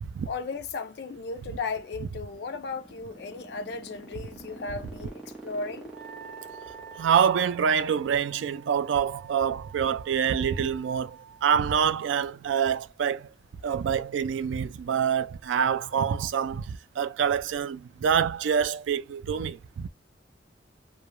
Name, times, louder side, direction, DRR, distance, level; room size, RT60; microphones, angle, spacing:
voice 1, 0.3-5.9, left 4 dB, 60° left, 0.3 m, -35 dB
sound 1, 2.1-8.7, right 2 dB, 5° right, 0.7 m, -45 dB
Wind instrument woodwind instrument, 5.9-11.4, right 7 dB, 55° right, 0.9 m, -48 dB
voice 2, 7.0-13.3 13.6-19.9, right 7 dB, 80° right, 0.3 m, -26 dB
2.2 x 2.2 x 2.9 m
head